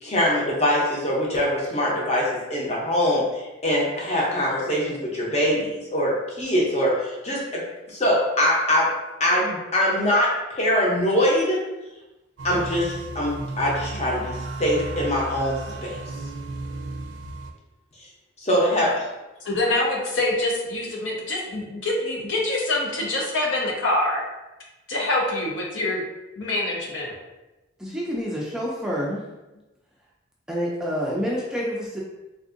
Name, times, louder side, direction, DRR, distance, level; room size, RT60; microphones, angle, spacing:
voice 1, 0.0-7.6 7.9-8.9 9.2-10.3 10.6-11.6 12.4-16.0 18.4-19.1, equal, 35° left, -4 dB, 0.7 m, -23 dB
sound 1, 12.4-17.5, right 2 dB, 70° right, 0.4 m, -34 dB
voice 2, 19.4-24.2 24.9-26.0 26.4-27.2, left 2 dB, 75° left, -2 dB, 0.7 m, -25 dB
voice 3, 27.8-29.2 30.5-32.0, equal, 5° right, -5 dB, 0.3 m, -28 dB
3.5 x 2.5 x 2.5 m, 1.0 s
head